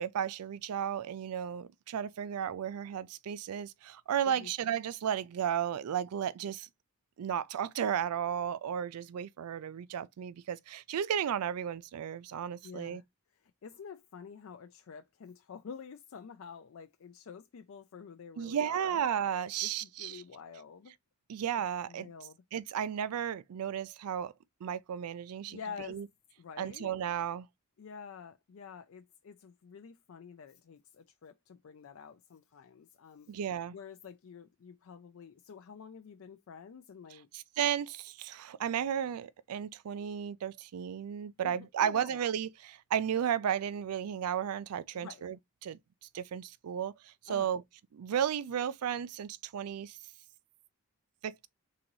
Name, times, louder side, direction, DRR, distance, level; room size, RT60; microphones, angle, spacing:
voice 1, 0.0-6.7 7.2-13.0 18.4-20.2 21.3-22.1 22.5-24.3 24.6-25.6 25.9-26.1 26.6-27.5 33.3-33.7 37.3-45.4 45.6-45.8 46.1-47.6 47.9-50.0 51.2-51.5, right 9 dB, 90° right, 0.4 m, -34 dB
voice 2, 12.6-13.0 13.6-19.0 19.6-20.9 21.9-22.4 25.5-26.0 26.4-27.0 27.8-33.4 33.7-37.3 41.4-42.2 44.9-45.2 47.3-47.5, left 6 dB, 65° left, 0.4 m, -48 dB
3.8 x 3.7 x 3.0 m
head